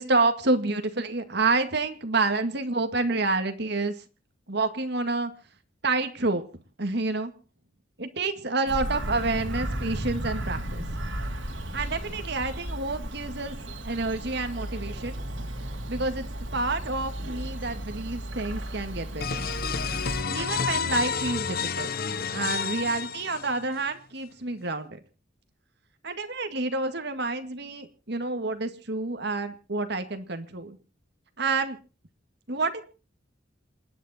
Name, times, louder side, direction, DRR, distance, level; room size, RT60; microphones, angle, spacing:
voice 1, 0.0-3.9 4.5-5.3 5.8-6.4 6.8-7.3 8.0-10.8 11.7-13.6 13.8-15.1 15.9-19.5 20.3-21.9 22.3-25.0 26.0-30.8 31.4-31.8 32.5-32.8, right 3 dB, 60° right, 7 dB, 2.0 m, -28 dB
Bird vocalization bird call bird song, 8.7-20.2, right 1 dB, 80° right, 3.4 m, -34 dB
sound 1, 19.2-23.8, left 6 dB, 50° left, 0.9 m, -30 dB
28.5 x 10.0 x 4.3 m, 0.36 s
head